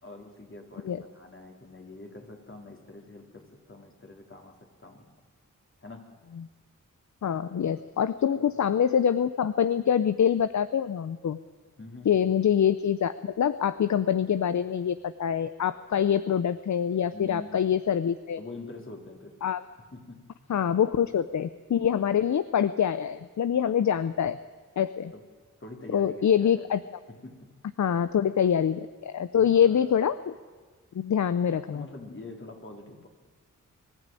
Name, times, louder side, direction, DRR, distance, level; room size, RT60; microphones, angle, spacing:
voice 1, 0.0-5.1 5.8-6.1 8.3-8.5 11.8-12.3 17.1-17.7 18.4-19.3 19.9-20.2 23.5-23.9 25.1-25.2 25.6-26.7 27.1-27.5 29.3-29.9 31.7-33.1, left 2 dB, 40° left, 1 dB, 3.9 m, -45 dB
voice 2, 7.2-11.4 12.1-18.4 19.4-19.6 20.5-24.4 24.8-25.1 25.9-26.8 27.8-30.3 30.9-31.9, left 8 dB, 60° left, 13 dB, 0.7 m, -25 dB
24.0 x 12.0 x 9.1 m, 1.5 s
cardioid pair, 45°, 33 cm